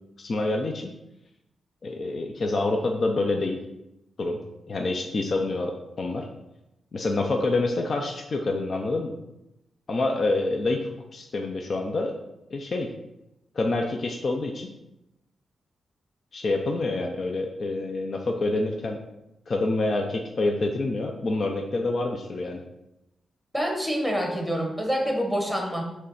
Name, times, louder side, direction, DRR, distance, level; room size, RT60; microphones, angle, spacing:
voice 1, 0.2-0.9 1.8-3.6 4.2-4.4 4.7-6.3 6.9-9.1 9.9-12.1 12.5-12.9 13.6-14.7 16.3-19.0 19.5-22.6, left 2 dB, 40° left, 3 dB, 0.5 m, -27 dB
voice 2, 23.5-25.8, equal, 5° left, 1 dB, 1.0 m, -26 dB
6.3 x 3.3 x 5.5 m, 0.89 s
wide cardioid pair, 180°, 0 cm